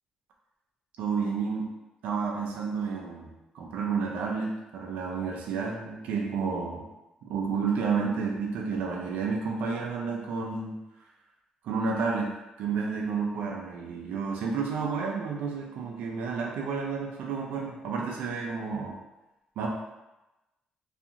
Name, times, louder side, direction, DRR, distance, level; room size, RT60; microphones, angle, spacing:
voice 1, 1.0-1.7 2.0-6.8 7.3-10.7 11.6-12.3 12.6-19.0 19.6-19.7, right 5 dB, 85° right, -1 dB, 0.4 m, -31 dB
2.4 x 2.4 x 2.8 m, 1.0 s
cardioid pair, 105°, 3 cm